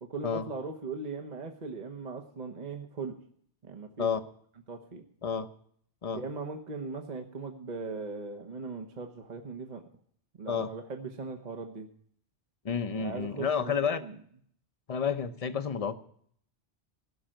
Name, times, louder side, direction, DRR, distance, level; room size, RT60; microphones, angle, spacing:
voice 1, 0.0-3.2 3.6-4.1 4.7-5.0 6.1-9.8 10.4-11.9 12.9-14.1, right 4 dB, 45° right, 5 dB, 1.1 m, -39 dB
voice 2, 12.6-14.0 14.9-15.9, left 6 dB, 35° left, 10 dB, 0.8 m, -30 dB
16.5 x 6.3 x 8.9 m, 0.62 s
omnidirectional pair, 1.1 m